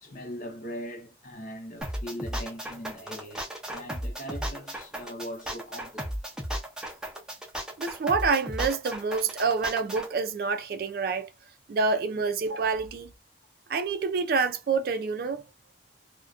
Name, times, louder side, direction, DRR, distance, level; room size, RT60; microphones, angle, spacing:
voice 1, 0.0-6.1, equal, 50° left, 0.7 m, -40 dB
sound 1, 1.8-10.1, equal, 5° right, 0.5 m, -35 dB
voice 2, 7.8-11.3 11.7-13.1 13.7-15.4, right 4 dB, 55° right, 0.3 m, -27 dB
2.4 x 2.1 x 2.4 m
head